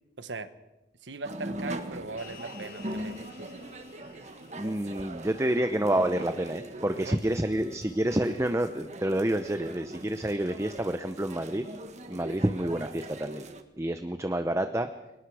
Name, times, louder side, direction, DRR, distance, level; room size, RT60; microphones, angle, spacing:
voice 1, 0.2-0.5 1.0-3.5 6.9-7.2, right 3 dB, 85° right, 11 dB, 1.4 m, -39 dB
sound 1, 1.2-13.6, right 1 dB, 40° right, 1.7 m, -41 dB
sound 2, 2.2-6.8, left 6 dB, 50° left, 5.4 m, -54 dB
voice 2, 4.5-11.6 12.1-13.4 13.8-14.9, right 1 dB, 15° right, 8 dB, 0.8 m, -28 dB
29.5 x 22.5 x 4.9 m, 1.0 s
head